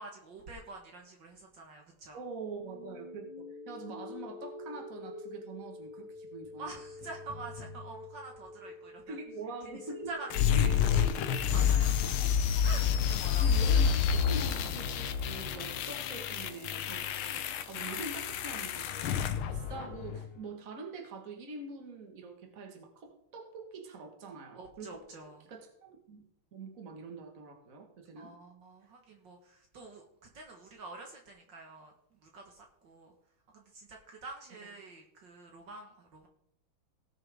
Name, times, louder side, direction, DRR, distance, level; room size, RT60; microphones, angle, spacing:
voice 1, 0.0-2.2 6.6-9.2 10.1-10.4 10.7-11.1 11.5-12.0 12.6-13.5 17.9-18.0 24.5-25.5 28.2-33.1 33.5-36.3, right 3 dB, 60° right, 1 dB, 2.2 m, -47 dB
voice 2, 2.1-6.7 9.1-10.1 10.5-11.1 12.2-12.6 13.4-19.1 19.5-25.0 25.5-26.2 26.5-28.3, right 3 dB, 40° right, 3 dB, 2.0 m, -44 dB
sound 1, 2.6-12.6, left 2 dB, 15° left, 1.4 m, -46 dB
sound 2, 10.3-20.3, left 8 dB, 80° left, 1.6 m, -29 dB
18.5 x 6.7 x 3.7 m, 0.70 s
omnidirectional pair, 2.3 m